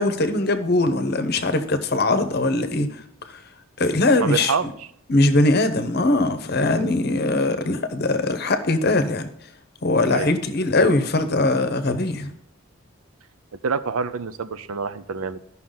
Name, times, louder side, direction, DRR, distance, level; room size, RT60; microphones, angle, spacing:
voice 1, 0.0-3.0 3.8-4.5 5.1-9.3 9.8-12.3, left 2 dB, 45° left, 0.8 m, -21 dB
voice 2, 4.2-4.7 10.1-10.3 13.6-15.4, right 5 dB, 85° right, 0.6 m, -26 dB
13.5 x 5.8 x 3.9 m
head